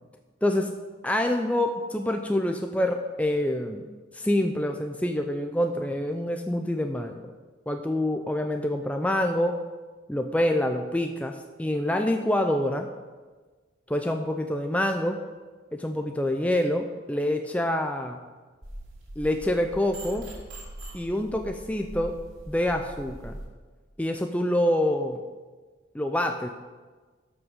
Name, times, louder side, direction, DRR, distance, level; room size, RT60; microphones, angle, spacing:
voice 1, 0.4-0.7 1.0-3.9 4.1-7.2 7.7-9.6 10.1-12.9 13.9-15.2 15.7-18.2 19.2-20.3 20.9-22.2 22.5-23.4 24.0-25.2 25.9-26.5, left 1 dB, 5° left, 4 dB, 0.5 m, -26 dB
sound 1, 18.6-23.5, right 1 dB, 75° right, 3.7 m, -42 dB
12.5 x 6.2 x 6.4 m, 1.4 s
head